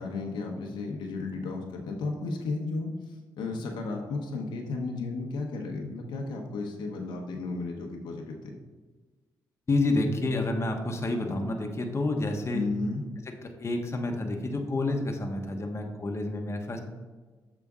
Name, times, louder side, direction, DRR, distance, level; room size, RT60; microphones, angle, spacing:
voice 1, 0.0-2.9 3.4-8.5 12.5-13.1, left 3 dB, 85° left, 1 dB, 0.9 m, -33 dB
voice 2, 9.7-12.7 13.3-16.8, left 2 dB, 35° left, 3 dB, 1.1 m, -29 dB
7.1 x 5.0 x 3.6 m, 1.3 s
cardioid pair, 70°, 8 cm